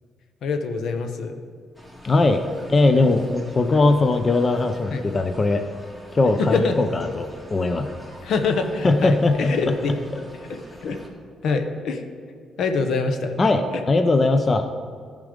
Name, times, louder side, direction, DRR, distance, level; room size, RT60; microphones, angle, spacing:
voice 1, 0.4-1.3 4.9-5.0 6.5-6.8 8.2-10.0 10.4-11.0 11.4-12.0 12.6-13.3 13.7-13.8, left 4 dB, 70° left, 7 dB, 0.9 m, -25 dB
sound 1, 1.7-11.1, equal, 15° left, 2.1 m, -45 dB
voice 2, 2.0-2.4 2.7-5.6 6.1-7.9 8.8-9.5 13.4-14.7, left 2 dB, 30° left, 7 dB, 0.6 m, -20 dB
13.5 x 5.2 x 5.1 m, 2.1 s
cardioid pair, 90°, 0 cm